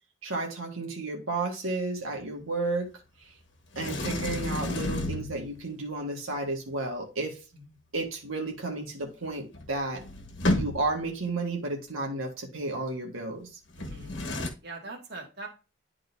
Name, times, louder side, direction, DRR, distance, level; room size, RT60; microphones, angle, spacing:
voice 1, 0.2-2.9 3.2-3.3 3.7-7.4 7.9-10.0 10.5-13.5, right 2 dB, 80° right, 1.6 m, -32 dB
Sliding door, 3.7-5.7 9.2-9.3 9.5-11.1 13.7-14.5, left 1 dB, 60° left, 1.3 m, -31 dB
voice 2, 13.8-14.1 14.6-15.5, right 3 dB, 50° right, 1.8 m, -42 dB
11.0 x 3.8 x 2.7 m
head